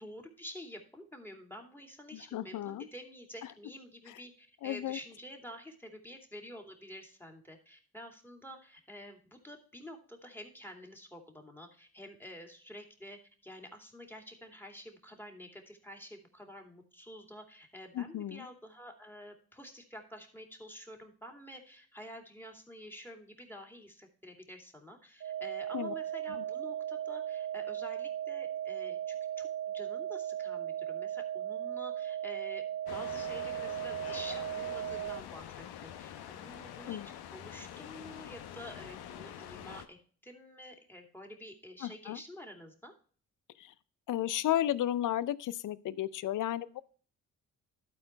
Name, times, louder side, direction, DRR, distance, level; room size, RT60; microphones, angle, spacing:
voice 1, 0.0-29.5 29.7-32.6 32.9-37.0 37.3-40.0 40.2-42.9, equal, 5° left, 4 dB, 2.6 m, -49 dB
voice 2, 2.1-2.9 4.6-5.0 17.9-18.5 25.7-25.9 36.9-37.1 41.8-42.2 43.6-43.7 44.1-46.8, left 12 dB, 55° left, 19 dB, 0.6 m, -33 dB
sound 1, 25.2-35.2, right 11 dB, 45° right, 0.6 m, -37 dB
sound 2, 32.9-39.9, left 10 dB, 80° left, 0.8 m, -46 dB
12.0 x 4.6 x 4.4 m, 0.43 s
supercardioid pair, 50°, 38 cm